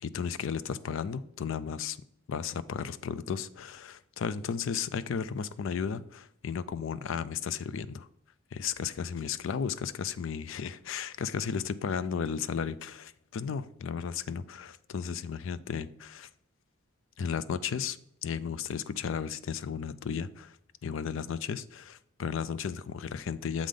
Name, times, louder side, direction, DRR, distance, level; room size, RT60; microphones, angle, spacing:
voice 1, 0.0-2.0 2.3-8.1 8.5-16.3 17.2-20.6 20.8-23.7, left 6 dB, 60° left, 16 dB, 0.3 m, -34 dB
7.3 x 3.8 x 5.0 m, 0.72 s
head